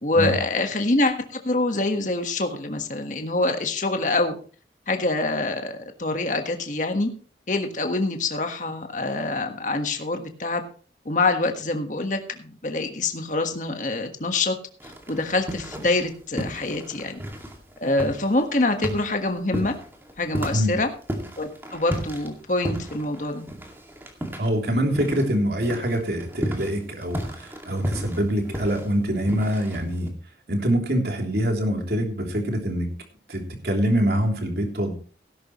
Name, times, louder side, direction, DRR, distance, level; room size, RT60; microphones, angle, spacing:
voice 1, 0.0-4.4 4.9-7.1 7.5-10.6 11.0-14.6 14.8-17.2 17.8-19.7 20.2-20.9 21.4-23.5, left 2 dB, 45° left, 5 dB, 1.5 m, -25 dB
sound 1, 14.8-16.1 16.4-25.4 25.6-30.1, equal, 15° right, 2.2 m, -33 dB
voice 2, 24.4-30.1 30.5-32.9 33.3-34.9, equal, 60° right, 2 dB, 3.2 m, -24 dB
17.5 x 11.0 x 3.1 m, 0.39 s
head